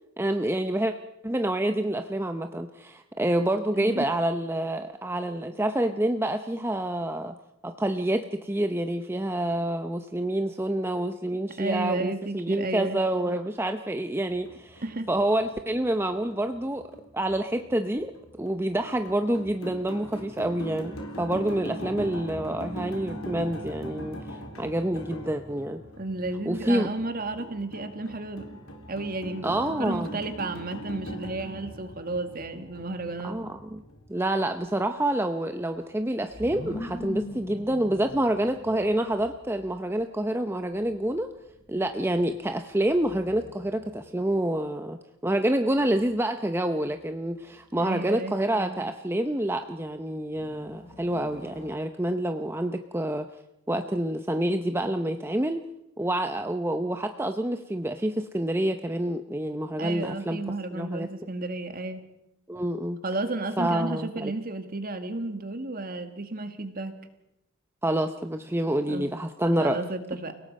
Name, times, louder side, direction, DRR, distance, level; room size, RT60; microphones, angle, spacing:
voice 1, 0.2-0.9 1.2-7.3 7.6-14.8 15.1-16.9 17.1-18.1 18.4-25.8 26.5-26.9 29.4-30.1 33.2-33.8 34.1-41.3 41.7-53.3 53.7-55.6 56.0-60.4 60.7-61.1 62.5-63.0 63.6-64.3 67.8-69.8, right 1 dB, 10° right, 7 dB, 0.7 m, -27 dB
voice 2, 3.7-4.1 11.6-13.0 14.8-15.1 26.0-28.6 28.9-33.4 47.8-48.4 59.8-62.0 63.0-66.9 68.9-69.1 69.6-70.4, right 2 dB, 40° right, 8 dB, 2.0 m, -32 dB
sound 1, 14.3-34.1, right 1 dB, 70° left, 3.8 m, -41 dB
sound 2, 32.7-44.5 45.7-46.5 50.3-51.7, left 1 dB, 30° left, 7.0 m, -44 dB
29.5 x 18.0 x 5.4 m, 0.88 s
head